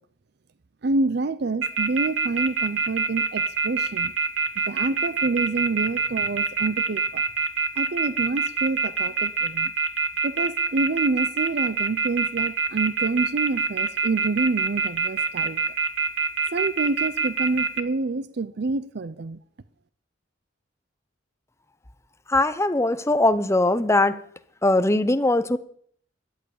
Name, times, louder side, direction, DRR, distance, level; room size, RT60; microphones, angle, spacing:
voice 1, 0.8-4.1 4.6-7.2 7.8-9.7 10.2-15.6 16.5-19.4, right 3 dB, 55° right, 14 dB, 0.5 m, -27 dB
sound 1, 1.6-17.8, right 5 dB, 75° right, 1.1 m, -24 dB
voice 2, 22.3-24.2 24.6-25.6, left 2 dB, 15° left, 12 dB, 0.7 m, -20 dB
13.0 x 9.4 x 8.6 m, 0.63 s
head